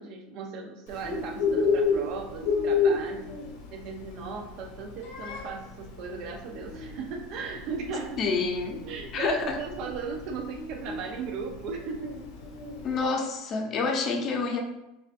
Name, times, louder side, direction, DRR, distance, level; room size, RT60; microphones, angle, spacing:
voice 1, 0.0-3.3 3.7-8.2 8.8-12.3, right 5 dB, 50° right, 3 dB, 0.7 m, -37 dB
Bird, 0.9-13.0, left 4 dB, 80° left, 1.3 m, -31 dB
voice 2, 8.2-8.8 9.1-9.6 12.8-14.6, left 4 dB, 35° left, 2 dB, 0.8 m, -28 dB
5.5 x 2.6 x 2.5 m, 0.92 s
supercardioid pair, 135°, 0 cm